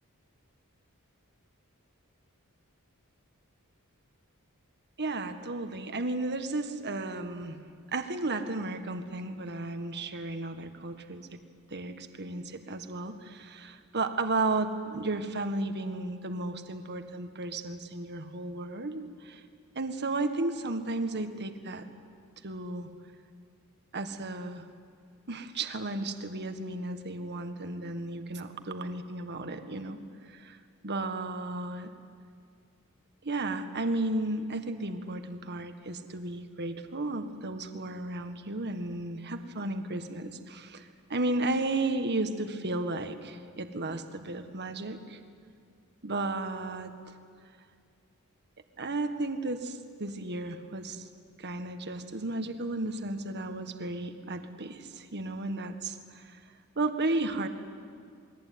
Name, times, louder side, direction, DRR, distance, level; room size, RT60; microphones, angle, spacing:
voice 1, 5.0-7.6 7.9-11.3 11.7-19.4 19.7-21.8 22.4-22.9 23.9-24.7 25.3-30.0 30.3-30.6 30.8-31.9 33.2-45.2 46.0-46.9 48.8-51.1 51.4-56.4 56.7-57.5, right 2 dB, 50° right, 8 dB, 1.7 m, -34 dB
28.5 x 21.0 x 9.5 m, 2.2 s
head